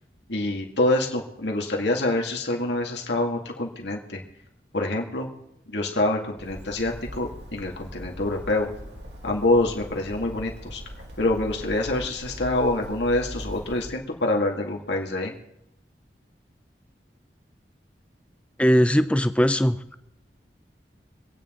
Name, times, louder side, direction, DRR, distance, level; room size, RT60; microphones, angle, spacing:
voice 1, 0.3-4.2 4.7-5.3 5.7-8.7 9.2-10.8 11.2-15.3, left 2 dB, 80° left, 0 dB, 2.2 m, -26 dB
Bird, 6.4-14.0, equal, 80° right, 2.4 m, -40 dB
voice 2, 18.6-19.8, equal, 5° left, 11 dB, 0.5 m, -19 dB
25.5 x 9.1 x 3.8 m, 0.82 s
head